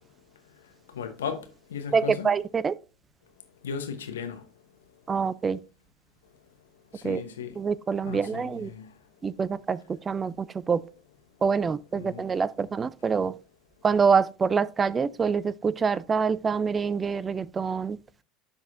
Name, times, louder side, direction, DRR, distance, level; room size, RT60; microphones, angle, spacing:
voice 1, 0.9-1.4 1.7-2.3 3.6-4.4 6.9-7.5 8.0-8.9 12.0-12.2, left 7 dB, 85° left, 0.9 m, -35 dB
voice 2, 1.9-2.7 5.1-5.6 7.0-7.2 7.6-8.7 9.2-10.8 11.4-13.4 13.8-18.0, right 5 dB, 25° right, 0.4 m, -26 dB
11.0 x 4.1 x 2.5 m
hypercardioid pair, 80°, 0 cm